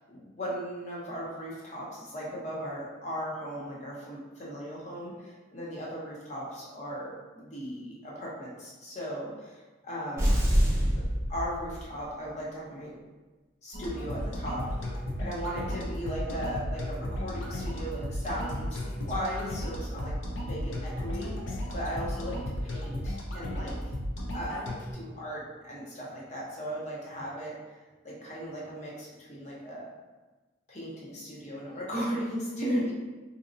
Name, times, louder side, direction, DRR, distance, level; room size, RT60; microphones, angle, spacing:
voice 1, 0.1-10.3 10.9-11.0 11.3-13.0 13.6-14.7 15.2-21.3 21.7-23.8 24.3-27.6 28.0-29.9 30.7-32.9, equal, 35° left, -5 dB, 0.8 m, -37 dB
sound 1, 10.2-12.0, equal, 15° right, 0.5 m, -25 dB
sound 2, 13.7-24.9, equal, 75° left, 0.6 m, -34 dB
3.9 x 2.8 x 2.6 m, 1.2 s
head